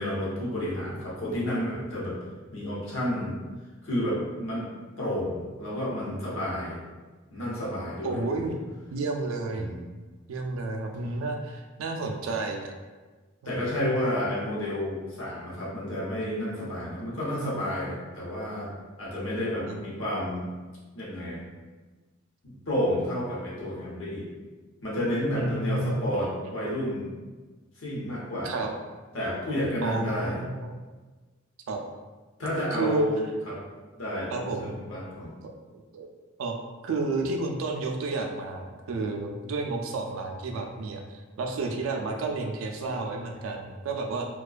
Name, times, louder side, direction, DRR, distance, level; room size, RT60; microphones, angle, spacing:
voice 1, 0.0-2.2 2.5-3.4 3.8-4.7 5.0-6.8 7.3-8.6 9.6-9.8 13.4-18.7 19.0-20.5 20.9-21.5 22.4-24.3 24.8-27.1 27.8-28.5 29.1-30.4 32.4-33.6 34.0-35.3, left 1 dB, 70° left, -6 dB, 0.8 m, -31 dB
voice 2, 8.0-8.6 8.9-9.7 10.3-12.7 13.4-14.0 19.7-19.8 25.3-26.3 28.4-28.7 29.8-30.7 31.7-31.8 32.7-33.1 34.3-34.7 35.7-36.1 36.4-36.5 36.8-44.3, right 3 dB, 80° right, 2 dB, 0.3 m, -31 dB
2.3 x 2.2 x 2.4 m, 1.3 s
head